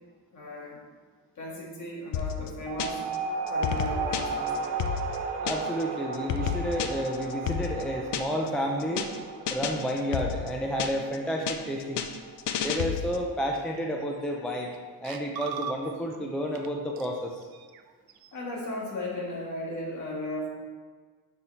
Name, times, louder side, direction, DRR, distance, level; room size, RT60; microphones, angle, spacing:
voice 1, 0.3-0.8 1.3-3.0 3.5-4.6 18.3-20.5, left 1 dB, 45° left, -3 dB, 1.7 m, -36 dB
sound 1, 2.1-3.2 3.5-5.8 6.1-8.5 8.8-9.2 9.5-11.2 11.5-13.3, left 8 dB, 85° left, 0.7 m, -31 dB
sound 2, 2.7-13.6, right 4 dB, 85° right, 0.8 m, -35 dB
voice 2, 5.4-9.1 9.5-12.0 12.6-14.7 15.0-17.5, equal, ahead, 1 dB, 0.3 m, -31 dB
sound 3, 13.8-13.9 14.2-14.8 15.0-16.2 16.6-16.7 17.0-18.3, right 8 dB, 65° right, 0.5 m, -40 dB
6.7 x 5.6 x 4.3 m, 1.5 s
wide cardioid pair, 175°, 40 cm